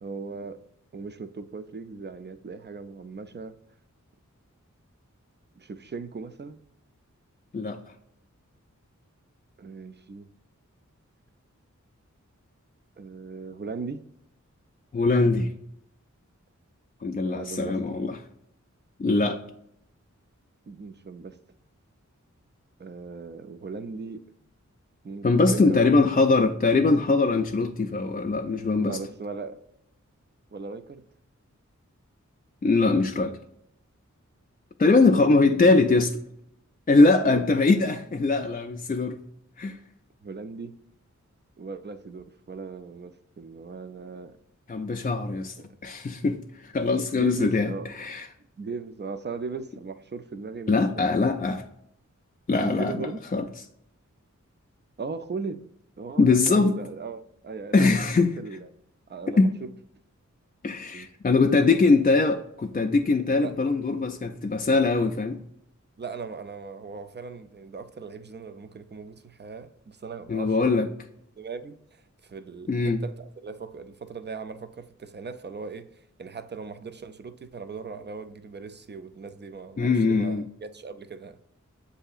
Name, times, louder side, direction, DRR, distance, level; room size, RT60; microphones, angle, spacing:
voice 1, 0.0-0.6 0.9-3.5 5.6-6.6 9.6-10.3 13.0-14.0 17.2-18.0 20.7-21.4 22.8-24.2 25.0-25.9 28.8-29.6 30.5-31.0 35.2-35.7 37.2-37.4 40.2-40.7 41.6-44.4 45.6-45.7 47.1-47.9 48.6-51.3 52.6-53.2 55.0-55.6 56.0-58.1 58.4-58.7 59.1-59.7 60.9-61.1 63.3-63.6 66.0-70.8 71.4-75.9 76.2-81.4, right 4 dB, 35° right, 0.4 m, -38 dB
voice 2, 14.9-15.5 17.0-18.2 19.0-19.4 25.2-29.0 32.6-33.4 34.8-36.1 36.9-39.2 39.6-39.8 44.7-45.6 45.8-48.3 50.7-51.6 52.5-53.4 56.2-56.8 57.7-58.4 59.4-59.5 60.6-65.4 70.3-70.9 72.7-73.0 79.8-80.4, left 3 dB, 30° left, 0.4 m, -22 dB
7.6 x 2.7 x 2.4 m
wide cardioid pair, 55°, 30 cm